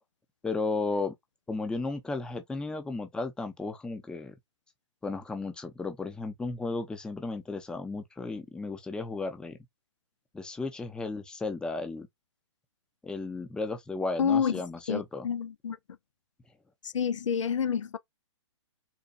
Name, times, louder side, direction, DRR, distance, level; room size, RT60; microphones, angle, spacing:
voice 1, 0.4-1.1 1.5-4.4 5.0-9.6 10.3-12.1 13.0-15.3, left 3 dB, 5° left, 0.6 m, -34 dB
voice 2, 14.2-14.5 14.9-15.8 16.8-18.0, left 7 dB, 90° left, 0.5 m, -28 dB
4.0 x 2.2 x 2.5 m
hypercardioid pair, 135°, 16 cm